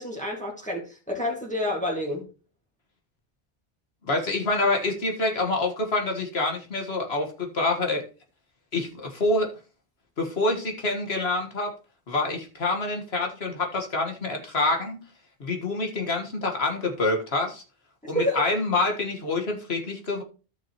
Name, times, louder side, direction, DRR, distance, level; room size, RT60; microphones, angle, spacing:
voice 1, 0.0-2.3 18.1-18.4, left 1 dB, 5° left, -1 dB, 1.9 m, -29 dB
voice 2, 4.1-8.0 8.7-9.5 10.2-11.7 12.1-15.0 15.4-17.6 18.1-20.2, left 2 dB, 75° left, 2 dB, 1.8 m, -26 dB
13.5 x 5.9 x 3.0 m, 0.35 s
omnidirectional pair, 1.1 m